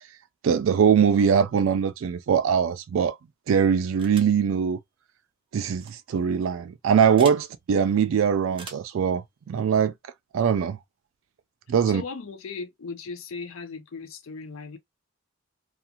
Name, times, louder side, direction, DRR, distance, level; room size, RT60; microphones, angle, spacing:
voice 1, 0.4-3.2 3.5-4.8 5.5-9.2 9.5-9.9 10.3-10.8 11.7-12.0, right 7 dB, 70° right, 0.3 m, -22 dB
sound 1, 4.0-4.4 5.7-5.9 7.2-7.4 8.5-9.0, right 4 dB, 25° right, 0.6 m, -42 dB
voice 2, 11.9-14.8, left 4 dB, 90° left, 0.5 m, -37 dB
2.4 x 2.4 x 2.7 m
head